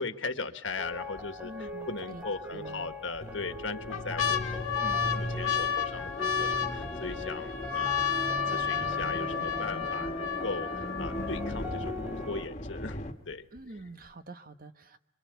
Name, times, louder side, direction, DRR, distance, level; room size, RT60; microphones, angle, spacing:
voice 1, 0.0-4.4 4.8-8.0 8.5-13.4, left 4 dB, 65° left, 9 dB, 1.7 m, -38 dB
sound 1, 0.7-1.2 1.7-1.8 2.7-3.2 3.7-11.6 12.3-12.4 12.6-13.1 13.6-13.7, left 7 dB, 85° left, 1.8 m, -32 dB
sound 2, 0.8-12.5, left 3 dB, 10° right, 1.6 m, -41 dB
voice 2, 1.4-2.9 13.5-15.0, right 2 dB, 45° right, 10 dB, 1.3 m, -46 dB
sound 3, 3.2-13.1, left 1 dB, 35° left, 1.7 m, -38 dB
26.0 x 24.5 x 8.2 m, 0.79 s
head